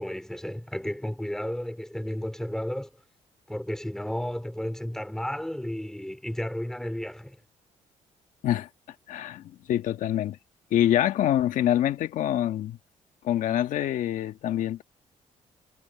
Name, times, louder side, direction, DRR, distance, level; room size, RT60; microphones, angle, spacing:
voice 1, 0.0-2.9 3.5-7.4, equal, 5° left, 3.5 m, -33 dB
voice 2, 9.1-10.4 10.7-12.8 13.2-14.8, left 11 dB, 75° left, 1.5 m, -25 dB
cardioid pair, 115°, 13 cm